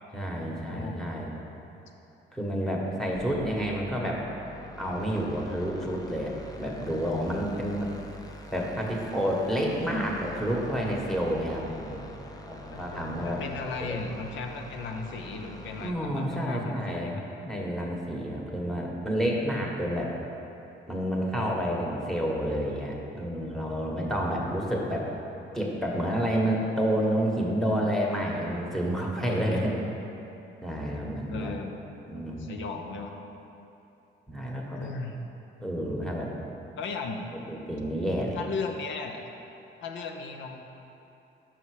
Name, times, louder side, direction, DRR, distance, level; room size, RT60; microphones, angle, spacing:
voice 1, 0.1-1.3 2.3-4.2 4.8-6.3 6.6-7.9 8.5-13.4 13.8-14.0 15.8-20.1 20.9-25.0 25.5-29.7 30.6-31.5 32.1-32.6 34.3-34.9 35.6-36.3 37.5-38.4, equal, ahead, -2 dB, 1.1 m, -29 dB
voice 2, 0.7-1.1 2.6-2.7 12.7-17.2 31.3-31.7 32.4-33.2 34.7-35.2 36.8-37.3 38.3-39.2 39.8-40.6, left 4 dB, 75° left, 4 dB, 0.7 m, -36 dB
sound 1, 3.1-15.9, equal, 20° left, 0.6 m, -45 dB
5.8 x 5.5 x 4.8 m, 2.9 s
cardioid pair, 90°, 20 cm